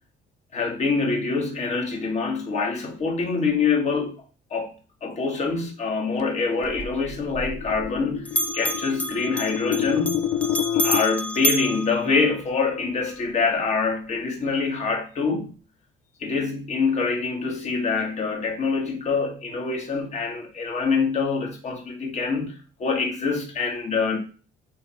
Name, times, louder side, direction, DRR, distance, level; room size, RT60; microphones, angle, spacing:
voice 1, 0.5-4.2 4.5-4.7 5.0-10.2 10.8-15.5 16.2-24.2, left 4 dB, 40° left, 1.4 m, -25 dB
sound 1, 6.3-11.0, left 10 dB, 75° left, 0.4 m, -28 dB
Bell, 6.6-8.0 8.3-12.7, equal, 10° left, 0.4 m, -30 dB
3.6 x 3.4 x 4.2 m
cardioid pair, 110°, 17 cm